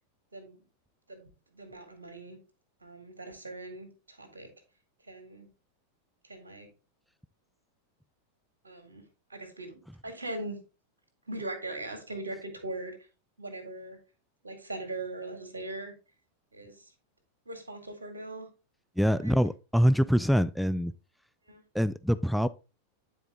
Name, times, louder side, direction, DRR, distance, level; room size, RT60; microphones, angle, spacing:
voice 1, 1.1-2.4 2.8-4.5 5.1-5.5 6.2-6.7 8.6-9.0 9.3-10.6 11.3-13.1 13.4-14.0 14.4-15.9 16.5-16.9 17.5-18.5 19.1-19.4 21.5-21.6, right 2 dB, 75° right, 2.3 m, -40 dB
voice 2, 19.0-20.9 21.7-22.5, equal, ahead, 0.3 m, -24 dB
9.8 x 4.7 x 3.6 m
figure-of-eight pair, 90°, 0 cm